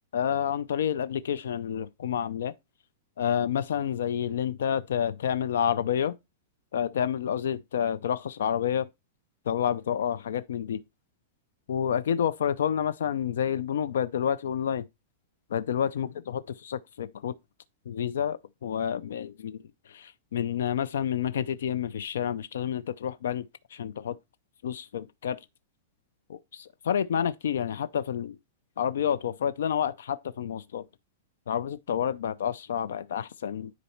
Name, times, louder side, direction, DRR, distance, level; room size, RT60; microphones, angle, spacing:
voice 1, 0.1-2.5 3.2-6.1 6.7-8.9 9.5-10.8 11.7-14.8 15.5-17.3 17.9-19.6 19.9-23.4 23.7-24.1 24.6-25.4 26.3-28.4 28.8-30.8 31.5-33.7, left 8 dB, 90° left, 0.5 m, -29 dB
10.0 x 4.0 x 4.4 m
supercardioid pair, 170°, 0 cm